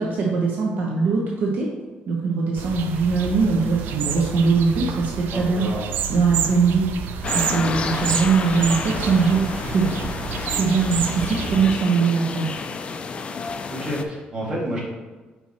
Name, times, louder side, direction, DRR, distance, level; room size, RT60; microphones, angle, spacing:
voice 1, 0.0-1.7 2.1-5.7 6.1-6.9 7.3-9.9 10.5-12.5, right 4 dB, 60° right, -2 dB, 0.9 m, -21 dB
sound 1, 2.6-11.7, right 7 dB, 80° right, 0.5 m, -29 dB
voice 2, 5.3-5.9 13.7-14.8, equal, 25° right, -5 dB, 1.9 m, -29 dB
sound 2, 7.2-14.0, left 5 dB, 35° left, 0.4 m, -30 dB
5.4 x 4.6 x 4.2 m, 1.3 s
cardioid pair, 150°, 3 cm